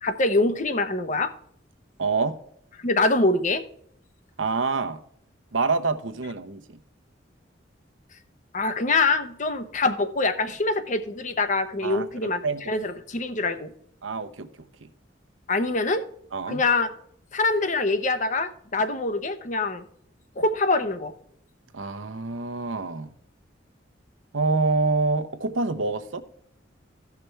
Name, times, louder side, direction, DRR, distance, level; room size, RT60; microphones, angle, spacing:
voice 1, 0.0-1.3 2.8-3.6 8.5-12.4 12.7-13.7 15.5-16.0 16.5-16.9 17.3-19.8 20.4-21.1, left 3 dB, 40° left, 0.8 m, -24 dB
voice 2, 2.0-2.4 4.4-5.0 5.5-6.8 11.8-12.6 14.0-14.5 14.8-14.9 16.3-16.6 21.7-23.1 24.3-26.2, right 4 dB, 90° right, 0.9 m, -26 dB
15.5 x 5.9 x 3.3 m
head